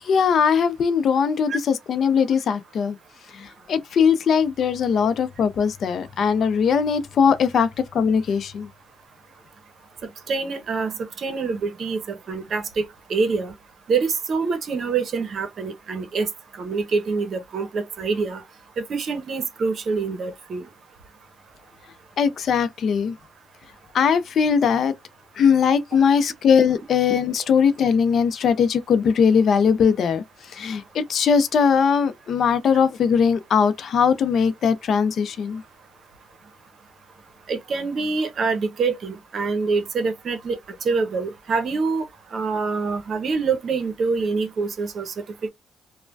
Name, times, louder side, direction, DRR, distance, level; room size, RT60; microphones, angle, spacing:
voice 1, 0.0-3.0 3.3-8.7 22.2-23.2 23.9-24.9 25.4-35.6, left 6 dB, 60° left, 0.5 m, -20 dB
voice 2, 10.3-13.5 13.9-16.3 16.6-18.4 18.8-20.7 37.5-42.0 42.3-45.1, right 4 dB, 55° right, 0.8 m, -25 dB
3.2 x 2.1 x 2.5 m
cardioid pair, 90°, 0 cm